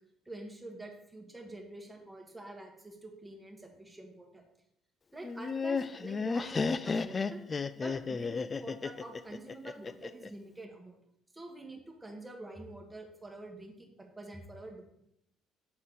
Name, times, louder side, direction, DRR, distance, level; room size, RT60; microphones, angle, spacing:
voice 1, 0.2-4.4 5.1-7.4 7.7-11.0 11.3-14.8, right 2 dB, 10° right, 1 dB, 1.4 m, -47 dB
Laughter, 5.2-10.3, left 4 dB, 30° left, 0.3 m, -33 dB
7.5 x 4.0 x 3.9 m, 0.77 s
cardioid pair, 105°, 0 cm